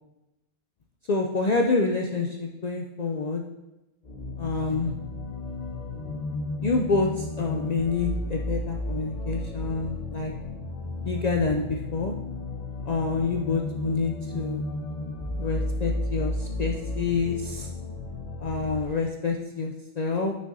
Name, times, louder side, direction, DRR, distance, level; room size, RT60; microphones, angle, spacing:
voice 1, 1.1-3.4 4.4-4.9 6.6-10.3 11.0-12.1 12.9-14.6 15.4-17.7 18.4-20.3, left 4 dB, 85° left, 1 dB, 0.3 m, -27 dB
sound 1, 4.0-18.8, left 2 dB, 35° left, 0.9 m, -33 dB
8.8 x 6.3 x 2.6 m, 0.99 s
omnidirectional pair, 1.3 m